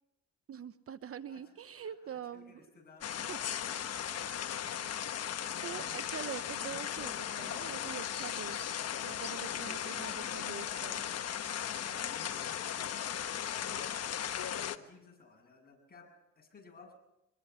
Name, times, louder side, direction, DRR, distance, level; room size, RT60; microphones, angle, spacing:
voice 1, 0.5-2.6 3.2-3.4 4.4-4.9 5.6-8.6 9.0-11.0, right 8 dB, 50° right, 12 dB, 0.9 m, -44 dB
voice 2, 1.8-4.8 9.4-14.1 14.4-16.9, left 4 dB, 30° left, 2 dB, 7.8 m, -56 dB
sound 1, 3.0-14.8, left 9 dB, 55° left, 1.2 m, -37 dB
25.0 x 21.5 x 5.7 m, 0.90 s
cardioid pair, 90°, 30 cm